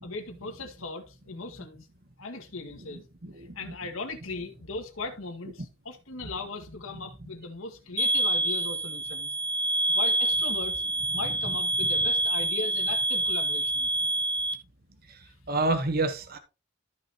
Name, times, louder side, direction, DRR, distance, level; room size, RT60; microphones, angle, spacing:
voice 1, 0.0-1.9 2.2-3.0 3.4-9.3 9.9-10.8 11.1-13.9 15.2-15.3, left 3 dB, 80° left, 2.0 m, -38 dB
sound 1, 8.0-14.5, right 2 dB, 25° right, 1.4 m, -27 dB
voice 2, 15.5-16.4, right 2 dB, 45° right, 1.1 m, -27 dB
13.5 x 6.0 x 3.0 m
head